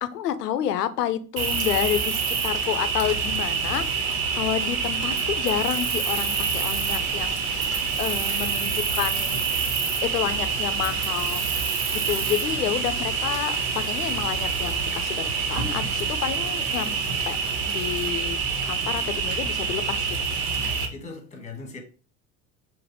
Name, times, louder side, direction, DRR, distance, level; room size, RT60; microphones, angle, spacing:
voice 1, 0.0-9.4 10.0-11.4 11.9-17.0 17.3-17.4 17.7-20.1, left 11 dB, 75° left, 0.6 m, -29 dB
Cricket, 1.4-20.9, right 5 dB, 60° right, 0.9 m, -26 dB
sound 1, 6.5-11.7, right 3 dB, 25° right, 1.8 m, -46 dB
voice 2, 15.8-16.2 20.8-21.8, left 4 dB, 15° left, 1.3 m, -40 dB
5.2 x 2.1 x 4.0 m
figure-of-eight pair, 70°, 48 cm